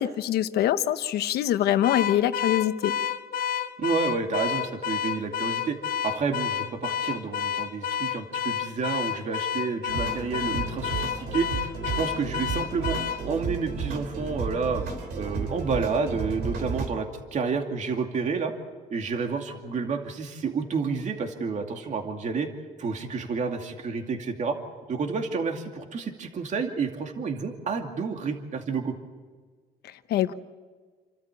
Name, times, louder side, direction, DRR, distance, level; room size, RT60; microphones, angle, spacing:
voice 1, 0.0-2.9 29.8-30.3, left 12 dB, 75° left, 11 dB, 1.1 m, -24 dB
Car / Alarm, 1.8-13.2, left 8 dB, 55° left, 1.6 m, -30 dB
voice 2, 3.8-5.8 6.0-13.0 13.2-14.8 15.2-18.5 18.9-22.5 22.8-24.6 24.9-29.0, right 5 dB, 45° right, 3 dB, 2.5 m, -30 dB
sound 1, 9.9-16.9, right 4 dB, 75° right, 3.3 m, -33 dB
28.5 x 13.0 x 8.4 m, 1.5 s
cardioid pair, 110°, 17 cm